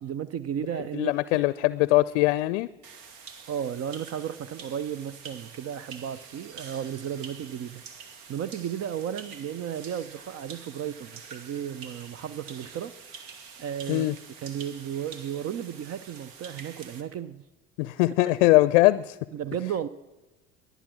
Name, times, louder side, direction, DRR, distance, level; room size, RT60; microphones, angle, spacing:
voice 1, 0.0-1.1 3.5-7.8 8.3-12.9 13.6-14.1 14.4-17.4 19.3-19.9, right 9 dB, 45° right, 0.7 m, -34 dB
voice 2, 1.0-2.7 13.9-14.1 17.8-19.2, left 18 dB, 70° left, 0.5 m, -21 dB
sound 1, 2.8-17.0, right 6 dB, 65° right, 1.6 m, -46 dB
22.0 x 8.1 x 6.2 m
hypercardioid pair, 65°, 36 cm